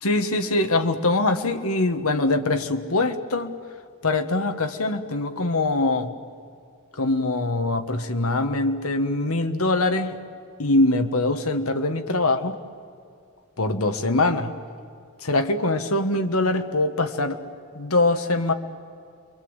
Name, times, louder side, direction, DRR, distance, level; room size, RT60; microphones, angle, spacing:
voice 1, 0.0-3.6 4.0-6.1 7.0-10.1 10.6-12.6 13.6-14.5 15.2-17.4 17.7-18.5, left 2 dB, 75° left, 7 dB, 1.6 m, -23 dB
28.0 x 23.5 x 8.2 m, 2.4 s
head